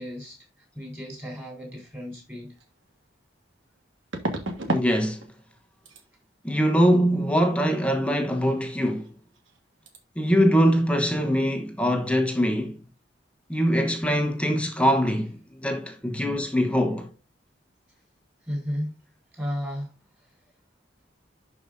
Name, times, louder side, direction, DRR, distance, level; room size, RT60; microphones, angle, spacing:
voice 1, 0.0-2.6 18.4-18.9 19.3-20.3, equal, 10° right, 3.7 m, -34 dB
sound 1, 2.6-2.7 4.1-4.9 5.2-5.6 5.9-6.0 9.0-9.1 9.3-9.6 9.9-10.0, right 2 dB, 85° right, 1.5 m, -31 dB
voice 2, 4.7-5.2 6.4-9.1 10.2-12.8 13.5-17.1, equal, 5° left, 0.9 m, -23 dB
11.5 x 4.8 x 2.6 m
head